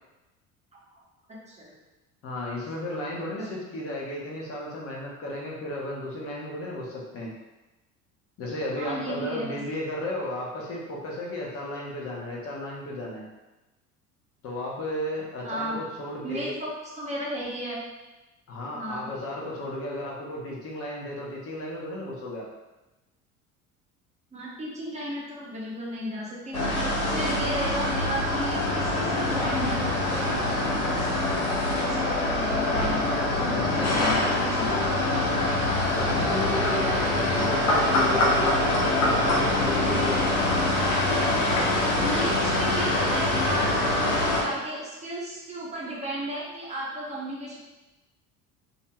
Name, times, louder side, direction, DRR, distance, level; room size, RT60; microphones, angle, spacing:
voice 1, 1.3-1.7 8.8-9.6 15.4-15.8 16.2-16.7 17.0-17.8 18.7-19.1 24.3-31.1 31.7-33.0 33.3-35.3 39.8-40.0 42.0-47.6, right 1 dB, 15° right, -5 dB, 0.9 m, -34 dB
voice 2, 2.2-7.3 8.4-13.2 14.4-16.5 18.5-22.5 33.6-33.9 35.9-40.2, left 1 dB, 35° left, -3 dB, 0.8 m, -34 dB
sound 1, 26.5-44.4, left 2 dB, 80° left, 0.7 m, -24 dB
2.5 x 2.4 x 3.0 m, 1.1 s
figure-of-eight pair, 65°, 43 cm